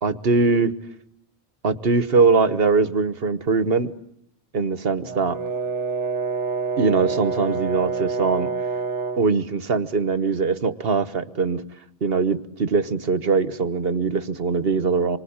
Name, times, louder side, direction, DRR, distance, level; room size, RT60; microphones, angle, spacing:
voice 1, 0.0-0.8 1.6-3.9 4.5-5.4 6.8-8.5 9.2-11.6 12.0-15.2, right 4 dB, 60° right, 13 dB, 1.5 m, -21 dB
Brass instrument, 5.1-9.3, right 5 dB, 90° right, 1.7 m, -27 dB
27.0 x 24.5 x 8.8 m, 0.74 s
omnidirectional pair, 1.2 m